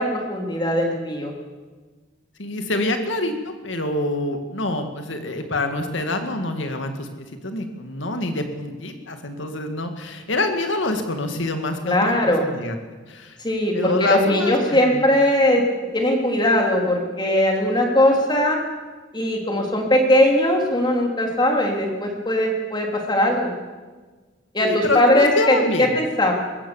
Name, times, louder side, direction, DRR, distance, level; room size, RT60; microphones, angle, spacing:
voice 1, 0.0-1.3 11.8-12.5 13.4-15.6 15.9-18.6 19.1-23.5 24.5-26.3, left 1 dB, 20° left, 1 dB, 3.3 m, -20 dB
voice 2, 2.4-12.8 13.1-13.4 13.7-15.0 24.6-25.9, left 2 dB, 70° left, 6 dB, 2.0 m, -26 dB
22.0 x 16.5 x 7.2 m, 1.4 s
head